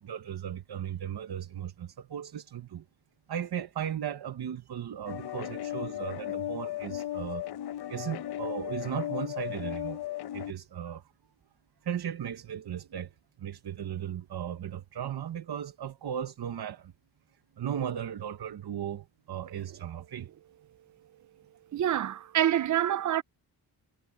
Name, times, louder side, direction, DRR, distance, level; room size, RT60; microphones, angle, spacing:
voice 1, 0.0-2.8 3.3-7.5 7.9-10.0 10.3-11.0 11.8-13.1 13.4-16.9 17.6-20.3, right 9 dB, 85° right, 1.2 m, -36 dB
sound 1, 5.1-10.5, left 13 dB, 80° left, 0.7 m, -36 dB
voice 2, 21.7-23.2, right 11 dB, 50° right, 0.5 m, -26 dB
wide cardioid pair, 135°, 38 cm